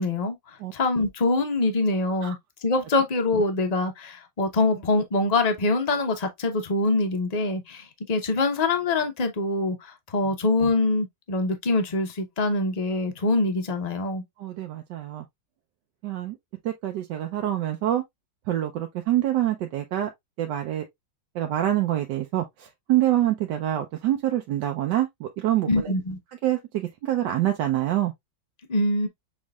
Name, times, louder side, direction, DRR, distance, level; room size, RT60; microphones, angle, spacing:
voice 1, 0.0-2.4 2.6-14.2 25.7-26.2 28.7-29.1, left 2 dB, 45° left, 0.5 m, -24 dB
voice 2, 14.4-15.2 16.0-16.4 16.6-18.0 18.5-20.1 20.4-20.9 21.3-25.9 26.4-28.1, right 13 dB, 70° right, 1.2 m, -26 dB
6.3 x 3.4 x 2.3 m
omnidirectional pair, 2.1 m